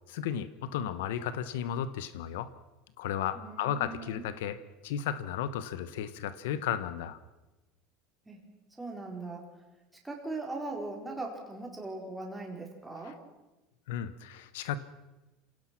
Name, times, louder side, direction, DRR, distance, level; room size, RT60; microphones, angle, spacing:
voice 1, 0.1-2.5 3.0-7.2 13.0-13.1 13.9-14.8, left 9 dB, 90° left, 14 dB, 1.1 m, -34 dB
voice 2, 3.3-4.2 8.3-8.5 8.8-9.6 10.0-13.2, right 2 dB, 10° right, 0 dB, 4.4 m, -40 dB
27.0 x 17.5 x 6.0 m, 1.0 s
supercardioid pair, 140°, 0 cm